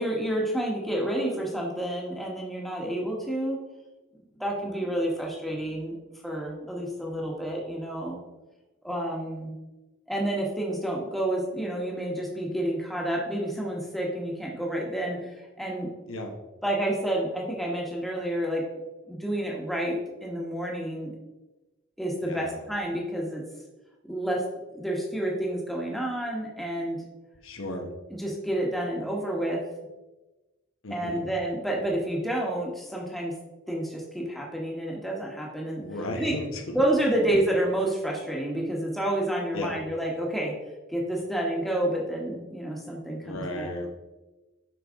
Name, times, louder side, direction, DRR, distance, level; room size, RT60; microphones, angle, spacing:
voice 1, 0.0-3.6 4.3-6.0 6.2-8.2 8.8-9.5 10.1-15.9 16.6-18.6 19.1-21.1 22.0-23.4 24.1-24.4 24.7-27.0 28.2-29.6 30.9-33.3 33.7-35.8 36.2-36.3 36.7-40.5 40.9-43.7, right 1 dB, ahead, -2 dB, 1.1 m, -29 dB
voice 2, 22.2-22.6 27.4-27.9 30.8-31.2 35.8-36.8 39.5-39.8 43.2-43.9, left 1 dB, 75° left, 3 dB, 1.1 m, -34 dB
7.4 x 5.6 x 3.6 m, 1.1 s
head